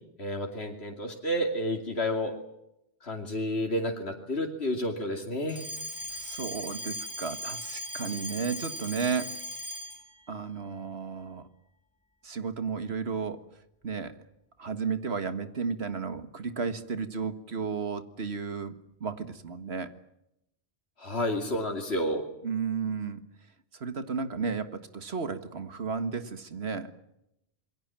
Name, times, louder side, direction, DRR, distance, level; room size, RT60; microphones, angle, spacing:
voice 1, 0.2-2.3 3.0-5.6 21.0-22.2, left 1 dB, 90° left, 2 dB, 3.1 m, -30 dB
Alarm, 5.5-10.1, left 1 dB, 5° left, 2.3 m, -38 dB
voice 2, 6.1-9.3 10.3-11.5 12.2-13.4 13.8-14.2 14.6-18.7 19.0-19.9 22.4-23.2 23.7-26.9, right 5 dB, 80° right, 11 dB, 2.0 m, -33 dB
27.5 x 22.5 x 7.6 m, 0.82 s
omnidirectional pair, 1.1 m